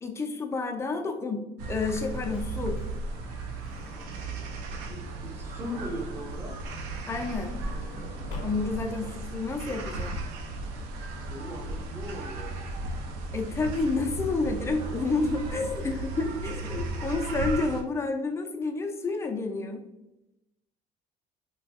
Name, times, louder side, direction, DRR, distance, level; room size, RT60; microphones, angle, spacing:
voice 1, 0.0-2.8 7.1-7.6 8.4-10.2 13.3-19.8, left 3 dB, 15° left, 4 dB, 0.3 m, -30 dB
sound 1, 1.6-17.8, right 2 dB, 85° right, 0.4 m, -36 dB
Truck / Door, 2.2-5.4 6.5-9.0 9.7-9.8 10.0-10.1, left 2 dB, 55° left, 0.7 m, -44 dB
voice 2, 4.9-6.5 11.3-12.5, equal, 15° right, 1 dB, 0.6 m, -38 dB
3.2 x 2.2 x 2.6 m, 0.93 s
cardioid pair, 120°, 15 cm